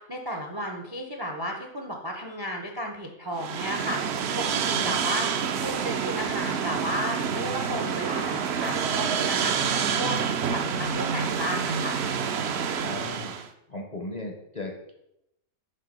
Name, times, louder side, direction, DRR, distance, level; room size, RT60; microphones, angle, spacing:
voice 1, 0.0-5.3 5.6-10.2 10.5-12.0, equal, 30° right, 2 dB, 0.4 m, -33 dB
sound 1, 3.4-13.5, right 7 dB, 65° right, 0.7 m, -28 dB
voice 2, 12.8-13.3 13.7-14.9, left 2 dB, 40° left, 1 dB, 0.6 m, -37 dB
5.5 x 3.6 x 5.2 m, 0.82 s
omnidirectional pair, 1.5 m